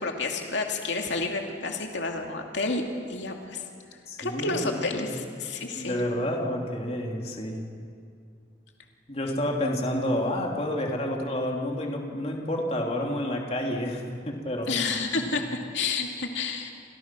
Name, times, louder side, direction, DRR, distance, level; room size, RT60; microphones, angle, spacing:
voice 1, 0.0-2.8 3.1-3.6 4.2-6.0 14.7-16.7, left 3 dB, 80° left, 2 dB, 2.4 m, -30 dB
voice 2, 4.1-5.1 5.7-7.7 9.1-14.7 15.1-15.2, left 1 dB, 35° left, 0 dB, 3.1 m, -29 dB
30.0 x 26.5 x 6.2 m, 2.3 s
head